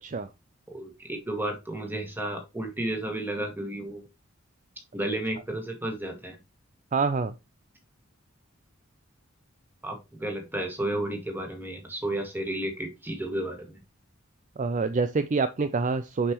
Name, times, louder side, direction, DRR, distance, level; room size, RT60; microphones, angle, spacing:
voice 1, 0.7-4.0 4.9-6.4 9.8-13.8, right 1 dB, 10° right, 1.9 m, -32 dB
voice 2, 6.9-7.3 14.6-16.3, right 4 dB, 35° right, 0.4 m, -26 dB
7.0 x 5.4 x 3.1 m
head